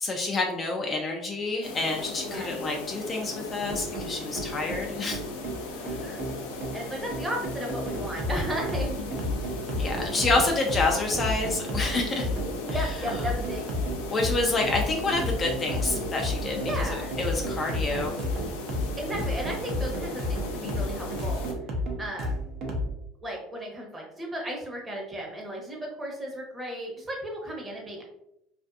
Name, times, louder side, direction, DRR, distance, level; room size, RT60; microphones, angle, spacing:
voice 1, 0.0-5.2 9.8-12.3 12.7-12.8 14.1-18.3, left 3 dB, 30° left, 1 dB, 0.4 m, -28 dB
sound 1, 1.6-21.5, left 3 dB, 90° left, 0.4 m, -37 dB
sound 2, 3.7-22.9, equal, 55° right, 0.6 m, -32 dB
voice 2, 5.7-6.2 6.7-8.9 12.7-13.7 16.6-17.1 19.0-21.4 22.0-22.4 23.2-28.0, equal, 20° right, -1 dB, 0.8 m, -35 dB
2.5 x 2.4 x 2.3 m, 0.82 s
supercardioid pair, 105°, 0 cm